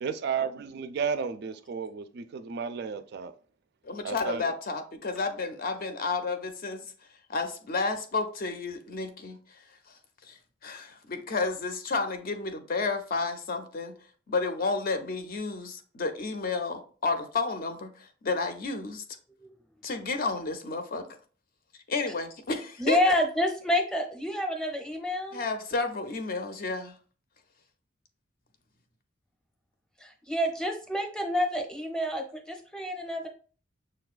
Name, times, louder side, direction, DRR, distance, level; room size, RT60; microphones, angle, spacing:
voice 1, 0.0-3.3 4.0-4.5, right 6 dB, 55° right, 0.4 m, -33 dB
voice 2, 3.8-6.8 7.3-9.6 10.3-13.9 14.3-19.0 19.8-21.1 21.9-23.0 25.3-26.9, left 3 dB, 50° left, 0.5 m, -31 dB
voice 3, 22.8-25.4 30.0-33.3, left 1 dB, 5° left, 0.6 m, -28 dB
6.3 x 2.2 x 2.4 m
head